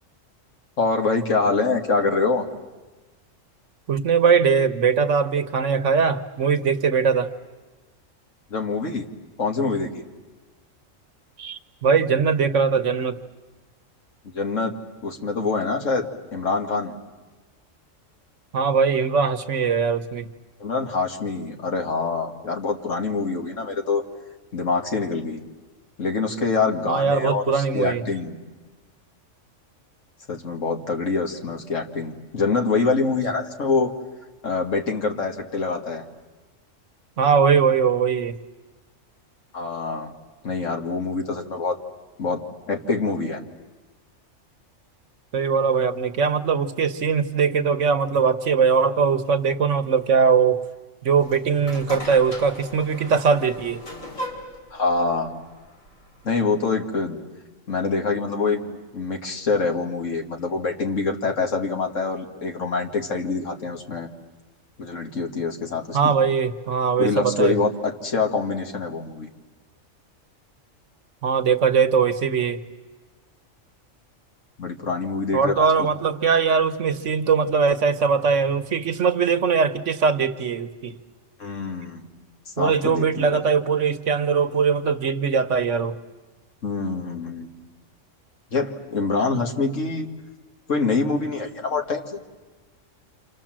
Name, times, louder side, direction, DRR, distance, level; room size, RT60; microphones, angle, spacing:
voice 1, 0.8-2.5 8.5-9.0 9.4-10.0 14.3-14.7 15.0-16.9 20.6-24.0 24.5-25.4 26.0-28.4 30.3-33.9 34.4-36.0 39.5-40.1 40.4-41.8 42.2-43.4 54.7-55.4 56.2-57.2 57.7-64.1 64.8-66.1 67.0-69.3 74.6-75.9 81.4-82.1 82.6-83.4 86.6-87.5 88.5-90.1 90.7-92.2, left 4 dB, 70° left, 4 dB, 2.1 m, -25 dB
voice 2, 3.9-7.3 11.4-13.2 18.5-20.3 26.9-28.0 37.2-38.4 45.3-50.6 51.0-53.8 65.9-67.6 71.2-72.6 75.3-81.0 82.6-86.0, right 6 dB, 65° right, 9 dB, 1.4 m, -21 dB
sound 1, 51.1-56.4, left 1 dB, 85° left, 3.9 m, -38 dB
28.0 x 27.5 x 7.5 m, 1.3 s
omnidirectional pair, 1.3 m